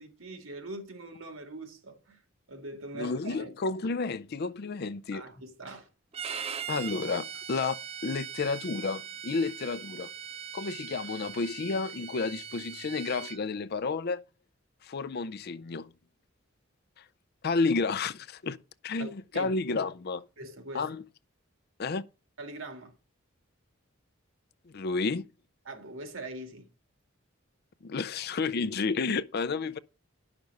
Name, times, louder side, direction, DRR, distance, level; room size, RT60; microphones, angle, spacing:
voice 1, 0.0-2.2 2.5-3.5 5.1-5.9 19.0-19.5 20.4-20.9 22.4-22.9 25.6-26.7, right 2 dB, 80° right, 2.1 m, -42 dB
voice 2, 2.9-5.2 6.7-10.1 10.5-14.2 14.8-15.9 17.4-18.6 18.8-20.2 20.7-21.0 21.8-22.0 24.7-25.3 27.8-29.8, left 4 dB, 50° left, 0.5 m, -31 dB
Bowed string instrument, 6.1-13.4, right 8 dB, 30° right, 0.4 m, -40 dB
10.5 x 6.0 x 5.3 m
head